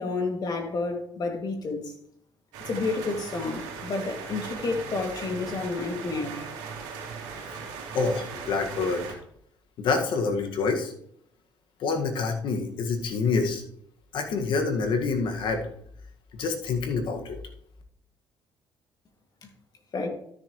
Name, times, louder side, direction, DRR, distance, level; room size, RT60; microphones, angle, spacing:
voice 1, 0.0-1.9 2.7-6.5 19.4-19.5 19.9-20.1, left 3 dB, 50° left, 3 dB, 2.4 m, -30 dB
sound 1, 2.5-9.1, right 5 dB, 90° right, 2.8 m, -38 dB
voice 2, 7.9-9.1 9.8-10.9 11.8-13.6 14.1-15.6 16.3-17.4, left 4 dB, 70° left, 4 dB, 1.9 m, -27 dB
13.0 x 7.1 x 3.2 m, 0.69 s
supercardioid pair, 70°, 9 cm